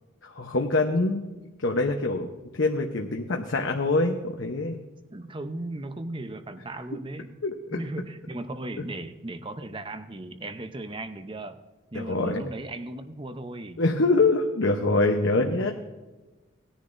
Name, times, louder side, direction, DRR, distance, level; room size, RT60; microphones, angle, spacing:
voice 1, 0.2-1.2 1.6-4.8 7.4-7.8 11.9-12.4 13.8-15.7, left 2 dB, 65° left, 2 dB, 0.9 m, -25 dB
voice 2, 5.1-7.4 7.7-11.6 11.9-13.8 15.5-15.7, right 2 dB, 25° right, 9 dB, 0.7 m, -37 dB
18.5 x 10.0 x 2.6 m, 1.2 s
head